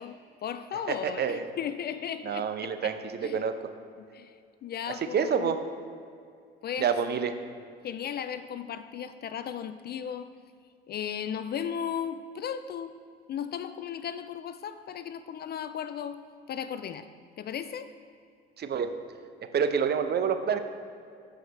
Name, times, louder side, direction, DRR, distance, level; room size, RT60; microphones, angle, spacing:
voice 1, 0.0-2.9 3.2-3.5 4.0-5.5 6.6-6.9 7.8-10.3 10.9-12.9 13.3-16.2 16.5-17.1 17.4-17.9, left 8 dB, 35° left, 12 dB, 0.4 m, -36 dB
voice 2, 0.9-1.4 2.2-3.5 4.9-5.6 6.8-7.3 18.6-18.9 19.5-20.6, right 7 dB, 35° right, 8 dB, 0.7 m, -28 dB
13.5 x 5.0 x 3.3 m, 2.4 s
hypercardioid pair, 60°, 29 cm